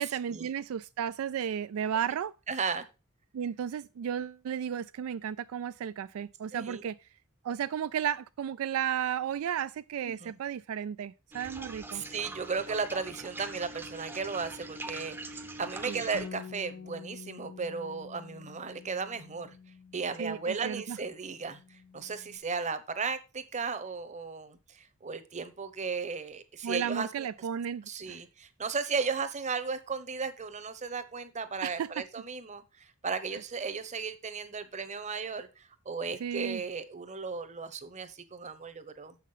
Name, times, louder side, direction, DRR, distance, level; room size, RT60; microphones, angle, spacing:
voice 1, 0.0-2.3 3.3-7.0 7.4-12.0 15.9-16.0 20.2-21.0 26.6-28.2 31.6-32.0 36.2-36.6, right 8 dB, 75° right, 0.3 m, -34 dB
voice 2, 2.5-2.8 6.5-6.8 10.1-10.4 11.9-19.5 19.9-27.3 27.9-39.2, right 5 dB, 35° right, 0.9 m, -35 dB
sound 1, 11.3-16.3, right 2 dB, 10° right, 0.6 m, -43 dB
Bass guitar, 16.1-20.8 21.1-22.4, left 6 dB, 85° left, 0.7 m, -48 dB
7.3 x 5.8 x 5.5 m
head